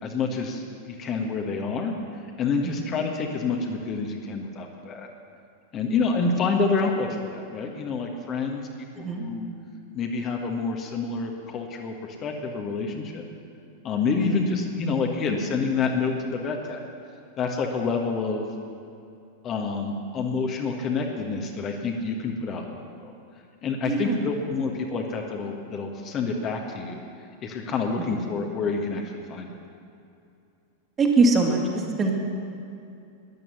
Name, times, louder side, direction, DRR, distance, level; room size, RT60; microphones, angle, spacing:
voice 1, 0.0-5.1 5.7-8.6 8.9-9.5 9.9-13.2 13.8-16.8 17.4-18.4 19.4-22.8 23.0-23.1 23.6-27.0 27.4-29.0 29.3-29.5, left 4 dB, 30° left, 2 dB, 1.4 m, -28 dB
voice 2, 23.8-24.3 28.1-28.2 31.0-32.1, right 3 dB, 20° right, 0 dB, 2.1 m, -23 dB
13.5 x 10.5 x 7.0 m, 2.6 s
figure-of-eight pair, 90°, 0 cm